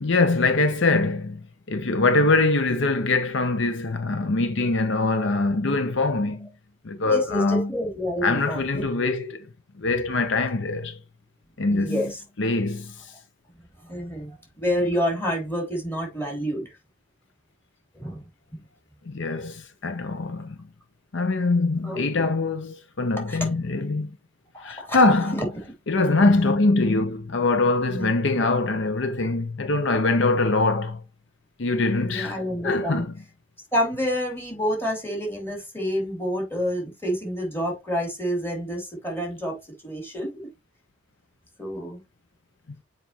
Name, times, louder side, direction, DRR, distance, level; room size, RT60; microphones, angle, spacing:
voice 1, 0.0-6.5 6.8-7.7 8.2-9.5 9.8-11.0 11.6-12.1 12.4-13.1 19.1-20.6 21.1-24.1 24.6-25.5 25.9-31.0 31.6-32.4 32.6-33.1, left 3 dB, 65° left, 0.7 m, -23 dB
voice 2, 7.0-8.9 11.7-12.2 13.8-16.7 17.9-18.6 21.8-22.0 23.2-23.5 24.5-25.5 27.9-28.1 32.0-33.1 33.7-39.6 39.8-40.5 41.6-42.0, equal, 10° left, 2.8 m, -28 dB
7.4 x 5.1 x 2.9 m
head